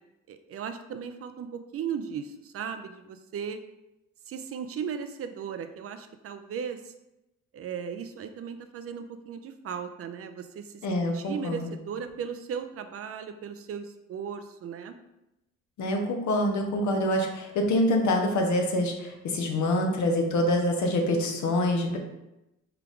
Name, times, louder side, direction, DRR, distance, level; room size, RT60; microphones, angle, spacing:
voice 1, 0.3-3.6 4.3-6.9 7.5-15.0 21.9-22.0, right 7 dB, 50° right, 9 dB, 0.4 m, -37 dB
voice 2, 10.8-11.7 15.8-22.0, left 1 dB, 70° left, 2 dB, 0.8 m, -26 dB
4.6 x 2.4 x 3.5 m, 0.93 s
cardioid pair, 90°, 30 cm